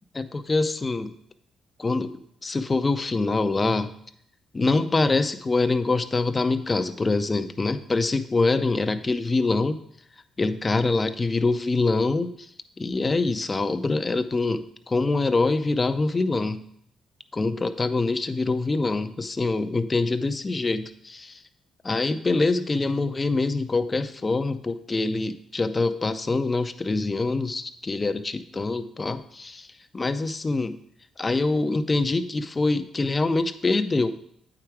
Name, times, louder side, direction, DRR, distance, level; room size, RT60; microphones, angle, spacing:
voice 1, 0.1-1.1 1.8-3.9 4.5-9.8 10.4-12.5 12.8-16.7 17.3-21.4 21.8-29.7 29.9-30.8 31.2-34.1, left 3 dB, 25° left, 10 dB, 0.5 m, -25 dB
8.5 x 4.8 x 4.6 m, 0.69 s
cardioid pair, 90°, 0 cm